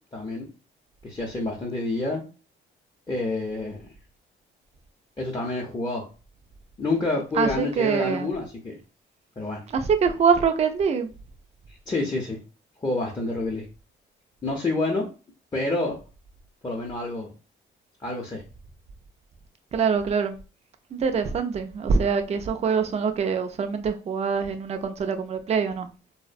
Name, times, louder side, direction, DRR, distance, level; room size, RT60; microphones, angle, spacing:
voice 1, 0.1-0.5 1.0-2.2 3.1-3.8 5.2-6.0 6.8-8.8 9.4-9.6 11.9-12.4 12.8-13.7 14.4-15.1 15.5-16.0 16.6-17.3 18.0-18.4, left 2 dB, 20° left, 0.6 m, -28 dB
voice 2, 7.4-8.3 9.7-11.1 19.7-20.3 20.9-25.9, right 6 dB, 35° right, 0.4 m, -24 dB
2.6 x 2.0 x 2.5 m
cardioid pair, 90°, 20 cm